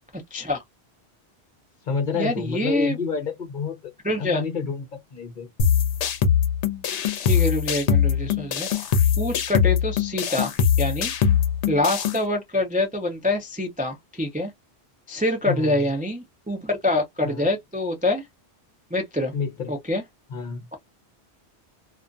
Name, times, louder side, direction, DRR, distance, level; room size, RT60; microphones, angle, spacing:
voice 1, 0.1-0.6 2.1-3.0 4.0-4.4 7.2-8.9 9.2-11.1 11.7-14.5 15.1-18.3 18.9-19.3 19.7-20.0, left 1 dB, 15° right, 0.3 m, -25 dB
voice 2, 1.8-3.9 4.2-5.5 15.5-15.9 17.2-17.5 19.3-19.7 20.3-20.7, left 5 dB, 50° left, 0.8 m, -29 dB
sound 1, 5.6-12.2, left 7 dB, 85° left, 0.9 m, -22 dB
2.5 x 2.4 x 2.2 m
omnidirectional pair, 1.2 m